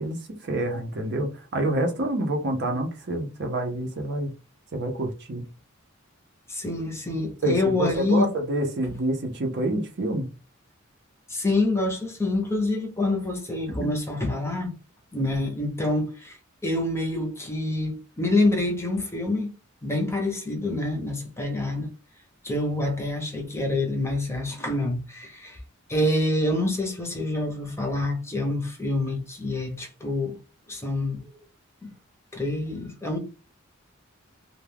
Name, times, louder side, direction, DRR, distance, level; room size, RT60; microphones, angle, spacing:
voice 1, 0.0-4.3 4.7-5.4 7.4-10.3 13.8-13.9, right 1 dB, 55° right, 0.6 m, -27 dB
voice 2, 6.5-8.3 11.3-14.7 15.1-19.5 19.8-21.9 22.4-25.6 25.9-30.4 30.7-31.2 31.8-31.9 32.3-33.2, left 2 dB, 15° left, 0.6 m, -26 dB
2.3 x 2.2 x 3.3 m
head